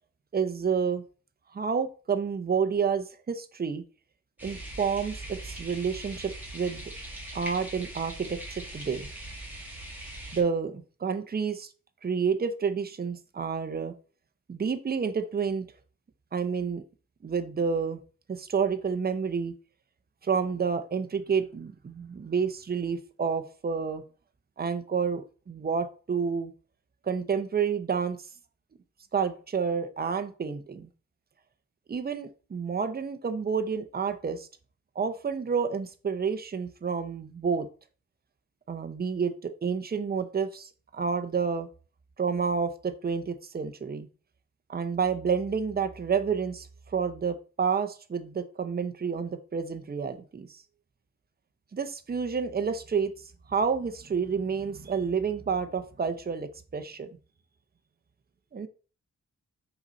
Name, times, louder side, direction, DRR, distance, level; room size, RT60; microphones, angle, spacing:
voice 1, 0.3-1.0 1.5-3.8 4.4-6.9 7.3-9.1 10.3-11.7 12.0-13.9 14.5-15.7 16.3-16.8 17.2-18.0 18.3-19.5 20.2-24.0 24.6-26.5 27.1-28.2 29.1-30.9 31.9-34.5 35.0-37.7 38.7-41.7 42.2-44.1 44.7-50.6 51.7-53.1 53.5-57.1 58.5-58.7, right 6 dB, 35° right, 9 dB, 0.7 m, -29 dB
sound 1, 4.4-10.4, right 1 dB, 5° right, 1.9 m, -41 dB
5.8 x 4.1 x 5.2 m, 0.37 s
wide cardioid pair, 160°, 29 cm